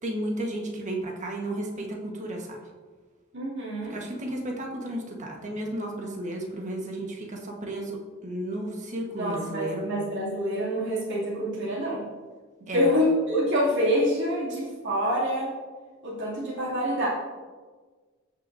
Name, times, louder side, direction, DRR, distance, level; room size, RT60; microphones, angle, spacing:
voice 1, 0.0-2.6 3.9-9.8 12.7-12.9, right 1 dB, 35° right, 0 dB, 1.4 m, -33 dB
voice 2, 3.3-4.0 9.2-12.1 12.7-15.6 16.0-17.1, equal, 65° right, -8 dB, 2.7 m, -26 dB
15.5 x 6.1 x 2.7 m, 1.4 s
head